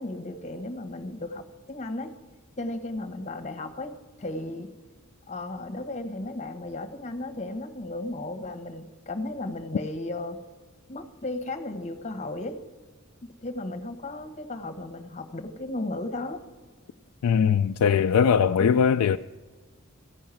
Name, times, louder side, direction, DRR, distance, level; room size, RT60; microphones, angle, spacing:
voice 1, 0.0-2.1 2.6-4.7 5.3-10.4 10.9-12.6 13.4-16.4 18.6-18.8, left 2 dB, 35° left, 1.1 m, -35 dB
voice 2, 17.2-19.2, left 7 dB, 90° left, 0.3 m, -21 dB
15.0 x 5.6 x 8.9 m
head